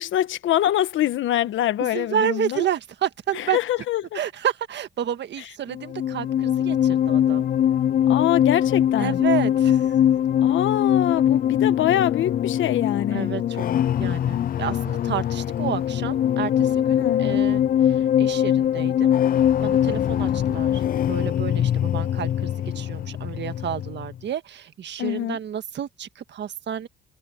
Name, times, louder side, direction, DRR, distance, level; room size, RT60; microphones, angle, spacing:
voice 1, 0.0-2.6 3.3-4.2 8.1-9.2 10.4-13.3 17.0-17.4 25.0-25.4, left 12 dB, 75° left, 1.3 m, -24 dB
voice 2, 1.8-3.6 4.1-7.5 9.0-9.9 13.1-19.1 19.6-20.8 21.1-26.9, right 9 dB, 65° right, 1.6 m, -30 dB
sound 1, 5.7-24.2, left 10 dB, 45° left, 0.4 m, -22 dB
cardioid pair, 90°, 20 cm